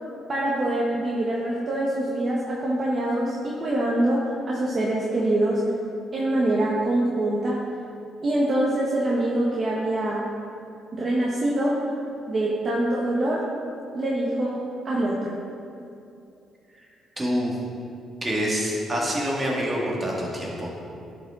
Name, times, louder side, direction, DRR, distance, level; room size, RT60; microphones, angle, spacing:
voice 1, 0.3-5.6 6.1-7.6 8.2-10.2 10.9-11.8 12.3-13.4 13.9-14.6 14.8-15.4, right 1 dB, 40° right, -5 dB, 1.1 m, -24 dB
voice 2, 17.2-17.6 18.2-20.7, equal, 20° right, -4 dB, 1.8 m, -26 dB
10.5 x 5.0 x 3.7 m, 2.6 s
cardioid pair, 100°, 0 cm